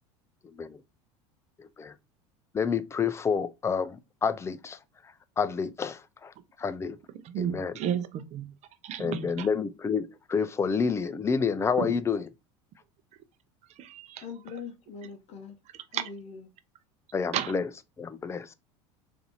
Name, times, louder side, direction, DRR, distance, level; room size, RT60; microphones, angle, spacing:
voice 1, 1.6-1.9 2.5-4.8 5.4-6.3 6.6-7.0 7.4-7.7 9.0-12.2 17.1-17.6 18.0-18.5, left 6 dB, 20° left, 0.5 m, -29 dB
voice 2, 7.2-8.6 8.8-9.5 11.8-12.0 13.8-14.2 15.9-16.1 17.3-17.5, right 9 dB, 50° right, 0.7 m, -33 dB
voice 3, 14.2-15.5 15.9-16.4, left 6 dB, 45° left, 0.9 m, -42 dB
4.2 x 2.7 x 4.0 m
supercardioid pair, 95°, 15 cm